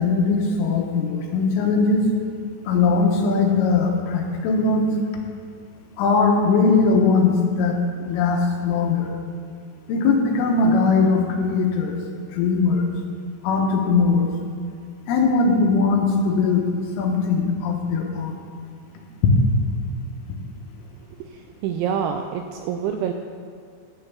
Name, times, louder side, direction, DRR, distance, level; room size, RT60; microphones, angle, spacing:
voice 1, 0.0-2.0 2.7-4.9 6.0-7.8 8.0-9.1 9.9-12.0 12.4-12.9 13.4-14.3 15.1-16.6 17.0-18.3 19.2-19.3, left 4 dB, 80° left, 1 dB, 3.7 m, -20 dB
voice 2, 21.6-23.1, right 8 dB, 85° right, 5 dB, 2.6 m, -26 dB
11.0 x 5.7 x 8.2 m, 2.3 s
omnidirectional pair, 5.7 m